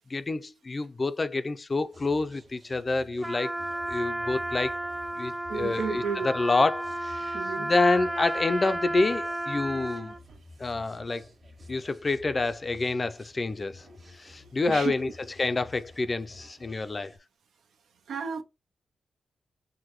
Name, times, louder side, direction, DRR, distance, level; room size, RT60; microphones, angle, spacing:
voice 1, 0.1-3.6 3.9-4.8 5.2-10.1 10.6-11.3 11.7-13.8 14.1-15.1 15.4-17.1, left 3 dB, 35° left, 0.4 m, -28 dB
sound 1, 1.9-17.2, left 1 dB, 50° right, 1.5 m, -51 dB
Trumpet, 3.2-10.2, right 1 dB, 10° right, 0.7 m, -33 dB
voice 2, 5.5-6.3 7.3-7.7 14.7-14.9 18.1-18.4, right 6 dB, 80° right, 0.6 m, -32 dB
5.9 x 2.2 x 3.0 m
cardioid pair, 65°, 0 cm